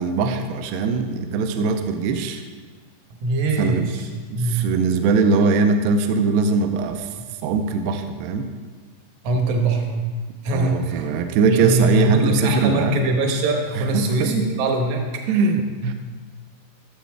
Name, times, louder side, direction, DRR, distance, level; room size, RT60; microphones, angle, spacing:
voice 1, 0.0-2.4 3.6-3.9 4.3-7.1 7.4-8.5 10.5-13.0 13.8-14.5 15.3-15.9, right 4 dB, 85° right, 6 dB, 2.5 m, -21 dB
voice 2, 3.2-4.7 9.2-10.0 10.4-11.1 11.5-15.0, right 2 dB, 70° right, 2 dB, 1.9 m, -22 dB
15.0 x 7.4 x 3.5 m, 1.4 s
omnidirectional pair, 4.8 m